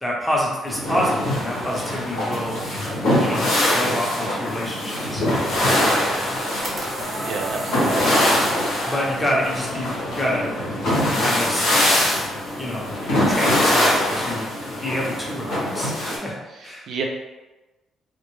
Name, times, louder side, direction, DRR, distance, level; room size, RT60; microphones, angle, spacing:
voice 1, 0.0-2.5 3.2-5.2 5.8-6.1 8.8-10.5 11.2-11.7 12.6-14.5 14.8-16.4 16.6-16.9, equal, 10° left, -3 dB, 0.7 m, -27 dB
sound 1, 0.7-16.2, left 1 dB, 85° left, 0.8 m, -23 dB
Wind instrument woodwind instrument, 5.4-12.2, left 1 dB, 55° left, 0.6 m, -41 dB
voice 2, 5.8-6.1 7.2-8.0 16.6-17.0, right 5 dB, 70° right, 1 dB, 0.3 m, -31 dB
sound 2, 6.5-8.7, right 1 dB, 35° right, 0.7 m, -31 dB
2.1 x 2.0 x 3.0 m, 1.1 s
cardioid pair, 90°, 0 cm